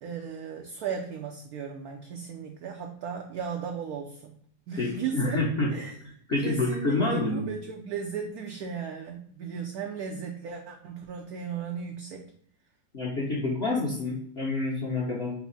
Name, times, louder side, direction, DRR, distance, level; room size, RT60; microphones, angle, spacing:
voice 1, 0.0-4.3 4.7-5.4 5.7-5.9 6.4-12.3, right 6 dB, 70° right, 2 dB, 0.9 m, -36 dB
voice 2, 4.8-5.7 6.3-7.4 12.9-15.3, left 2 dB, 45° left, -6 dB, 1.0 m, -28 dB
5.9 x 2.0 x 4.0 m, 0.63 s
omnidirectional pair, 1.9 m